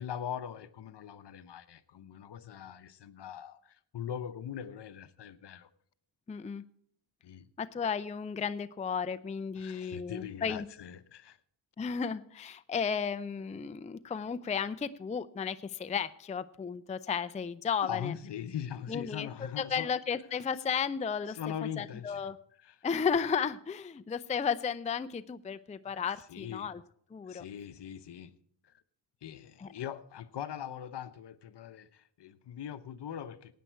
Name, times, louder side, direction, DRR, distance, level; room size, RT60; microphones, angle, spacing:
voice 1, 0.0-5.7 7.2-7.5 9.6-11.4 17.8-19.9 21.3-22.3 22.6-22.8 25.9-26.7 27.3-28.3 28.6-28.8 29.2-33.5, left 9 dB, 60° left, 0.9 m, -41 dB
voice 2, 6.3-6.6 7.6-10.7 11.8-18.1 18.9-19.3 19.6-21.4 21.8-22.4 22.8-26.8 27.1-27.4 29.6-29.7, left 6 dB, 15° left, 0.4 m, -34 dB
16.5 x 9.3 x 4.5 m
cardioid pair, 90°, 47 cm